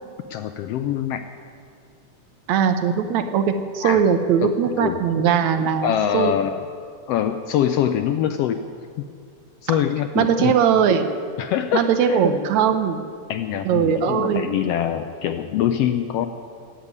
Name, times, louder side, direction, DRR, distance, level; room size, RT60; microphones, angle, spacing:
voice 1, 0.3-1.2 3.8-4.0 4.4-5.0 5.8-6.6 7.1-8.6 9.6-10.5 11.4-12.2 13.3-16.3, left 10 dB, 80° left, 8 dB, 1.4 m, -24 dB
voice 2, 2.5-6.3 10.2-11.1 11.7-13.0 13.7-14.5, right 7 dB, 75° right, 8 dB, 2.2 m, -20 dB
13.5 x 9.0 x 9.6 m, 2.5 s
omnidirectional pair, 3.4 m